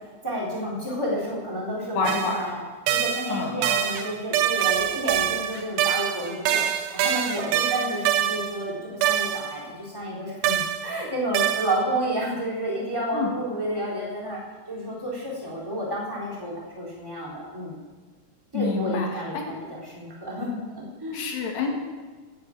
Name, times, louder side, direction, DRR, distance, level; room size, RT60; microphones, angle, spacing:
voice 1, 0.2-2.6 2.9-6.6 6.9-14.4 14.7-17.8 18.5-21.2, equal, 5° right, -4 dB, 2.9 m, -30 dB
voice 2, 1.9-2.4 3.3-3.6 13.1-13.3 18.5-19.6 21.1-21.7, left 4 dB, 70° left, 1 dB, 3.8 m, -27 dB
sound 1, 2.1-2.4 2.9-8.6 9.0-9.6 10.4-10.9 11.3-11.8, right 10 dB, 80° right, 2.2 m, -25 dB
12.0 x 8.7 x 8.6 m, 1.4 s
omnidirectional pair, 5.1 m